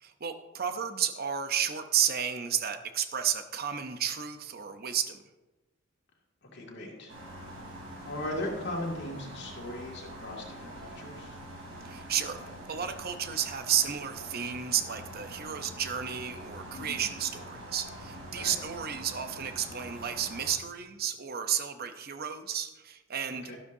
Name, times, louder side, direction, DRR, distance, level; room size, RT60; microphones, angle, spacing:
voice 1, 0.0-5.2 11.8-23.5, right 8 dB, 50° right, 8 dB, 0.7 m, -32 dB
voice 2, 6.5-7.1 8.0-11.4 16.7-17.1 18.3-18.6 23.3-23.6, left 1 dB, 60° left, -1 dB, 2.3 m, -38 dB
sound 1, 7.1-20.5, right 1 dB, 70° right, 3.5 m, -45 dB
12.5 x 12.0 x 2.7 m, 1.1 s
head